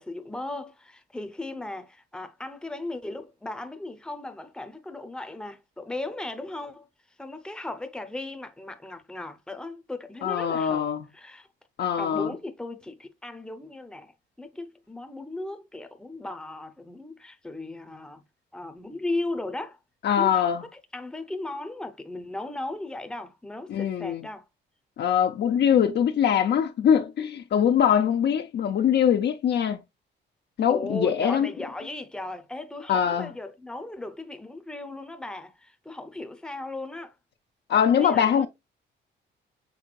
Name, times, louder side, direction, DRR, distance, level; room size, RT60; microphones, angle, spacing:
voice 1, 0.0-6.9 7.2-10.9 11.1-11.5 12.0-14.1 14.4-18.2 18.5-19.8 20.2-24.5 30.7-37.2 38.0-38.5, left 2 dB, 5° left, 0.7 m, -36 dB
voice 2, 10.2-11.0 11.8-12.3 20.0-20.6 23.7-24.2 25.0-29.8 30.6-31.5 32.9-33.3 37.7-38.5, left 8 dB, 60° left, 0.6 m, -22 dB
6.1 x 3.5 x 2.4 m
cardioid pair, 90°, 20 cm